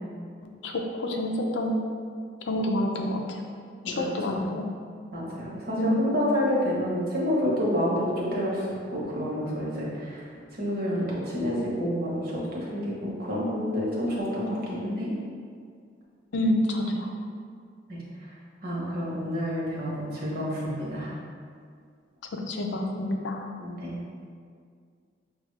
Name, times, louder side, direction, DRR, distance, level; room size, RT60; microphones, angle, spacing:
voice 1, 0.4-1.8 2.5-3.4 3.9-4.7 5.8-6.0 16.3-17.1 22.3-23.4, left 1 dB, 80° left, 2 dB, 0.5 m, -28 dB
voice 2, 3.8-4.5 5.1-10.2 10.6-15.2 17.9-18.0 18.6-21.1 23.6-23.9, equal, 55° right, -5 dB, 1.1 m, -29 dB
5.8 x 2.4 x 3.2 m, 2.1 s
head